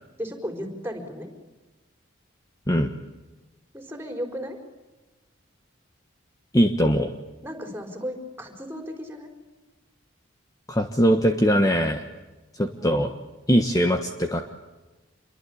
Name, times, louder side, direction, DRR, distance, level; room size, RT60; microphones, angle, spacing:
voice 1, 0.2-1.3 3.7-4.6 7.4-9.3 12.7-13.1, equal, 10° right, 5 dB, 4.6 m, -35 dB
voice 2, 6.5-7.1 10.7-12.0 12.6-13.1 13.5-14.4, equal, 15° left, 5 dB, 1.3 m, -21 dB
28.5 x 23.0 x 8.7 m, 1.1 s
head